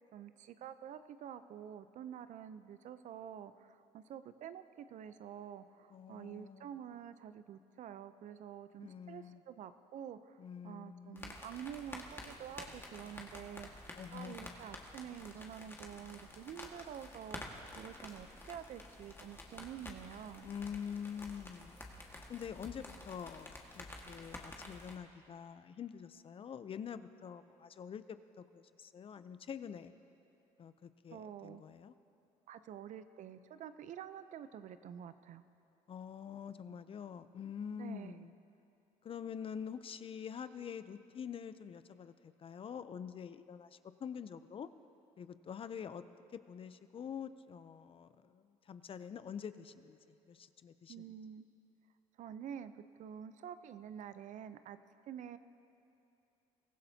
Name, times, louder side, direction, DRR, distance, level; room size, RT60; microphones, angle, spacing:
voice 1, 0.1-20.5 31.1-31.6 32.5-35.4 37.8-38.3 50.9-51.5 52.2-54.8 55.1-55.4, right 9 dB, 60° right, 12 dB, 0.6 m, -48 dB
voice 2, 5.9-6.7 8.8-9.4 10.4-11.3 13.9-14.5 20.4-21.8 22.3-29.9 30.6-31.9 35.9-38.4 39.0-44.7 45.2-46.0 46.3-51.1, left 7 dB, 40° left, 12 dB, 0.6 m, -46 dB
sound 1, 11.2-25.0, left 2 dB, 15° left, 1.7 m, -50 dB
23.5 x 15.0 x 2.8 m, 2.8 s
supercardioid pair, 90°, 15 cm